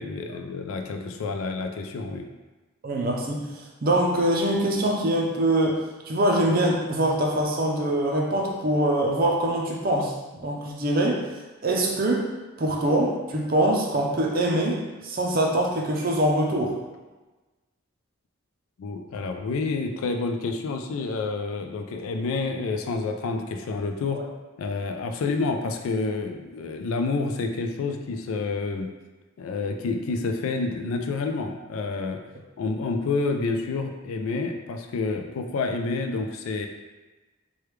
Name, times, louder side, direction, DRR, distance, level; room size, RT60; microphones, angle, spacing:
voice 1, 0.0-2.3 18.8-24.2 24.6-28.9 29.4-32.2 32.6-36.7, left 3 dB, 75° left, 5 dB, 0.3 m, -29 dB
voice 2, 2.8-3.5 3.8-5.8 6.1-10.1 10.4-11.2 11.6-12.2 12.6-16.8 24.1-24.2, right 1 dB, 40° right, -1 dB, 0.5 m, -23 dB
3.2 x 2.3 x 3.1 m, 1.2 s
head